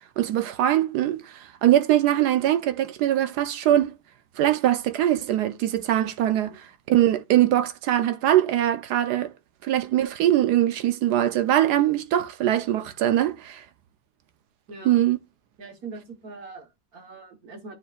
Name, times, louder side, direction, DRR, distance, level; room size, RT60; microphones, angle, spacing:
voice 1, 0.2-3.9 4.4-9.3 9.6-13.6 14.9-15.2, right 12 dB, 70° right, 1.0 m, -22 dB
voice 2, 14.7-15.0 15.6-17.8, right 4 dB, 55° right, 1.7 m, -42 dB
10.0 x 4.5 x 2.4 m
omnidirectional pair, 2.0 m